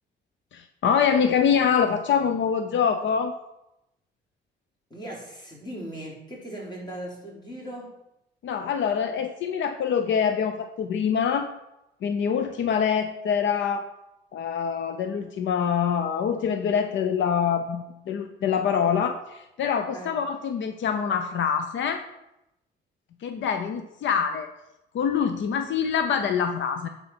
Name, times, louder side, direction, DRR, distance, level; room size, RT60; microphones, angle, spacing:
voice 1, 0.5-3.3 8.4-11.5 12.0-13.9 14.3-22.0 23.2-24.5 24.9-26.9, left 7 dB, 70° left, 7 dB, 0.8 m, -25 dB
voice 2, 4.9-8.0 19.9-20.1, right 1 dB, 20° left, -3 dB, 4.1 m, -38 dB
10.5 x 4.7 x 6.1 m, 0.87 s
cardioid pair, 90°, 20 cm